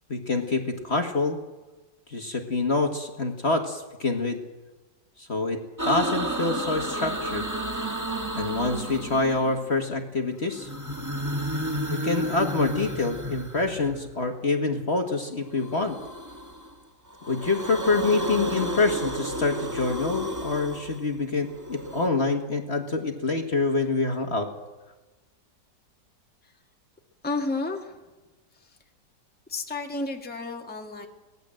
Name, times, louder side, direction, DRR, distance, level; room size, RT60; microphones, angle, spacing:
voice 1, 0.1-1.4 2.1-4.4 5.2-5.6 5.8-7.5 8.4-10.7 11.9-15.9 17.3-24.5, left 3 dB, 35° left, 4 dB, 1.9 m, -26 dB
sound 1, 5.8-9.7 10.5-14.2 15.6-16.7 17.1-22.1, right 1 dB, 10° right, 1.4 m, -32 dB
voice 2, 27.2-28.1 28.5-28.8 29.5-31.1, left 3 dB, 5° left, 2 dB, 1.7 m, -32 dB
24.0 x 18.0 x 7.8 m, 1.2 s
omnidirectional pair, 2.0 m